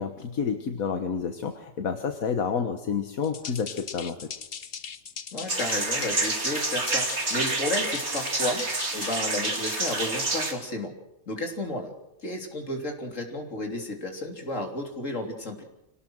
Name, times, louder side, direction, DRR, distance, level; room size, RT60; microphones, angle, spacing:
voice 1, 0.0-4.3, left 6 dB, 85° left, 6 dB, 1.8 m, -29 dB
sound 1, 3.2-10.1, left 6 dB, 45° left, 1.2 m, -39 dB
voice 2, 5.3-8.7 8.9-10.9 11.3-11.9 12.2-15.6, left 1 dB, 65° left, 2 dB, 3.8 m, -32 dB
sound 2, 5.5-10.5, right 2 dB, 50° right, 3.1 m, -28 dB
25.5 x 19.0 x 6.4 m, 0.86 s
omnidirectional pair, 1.4 m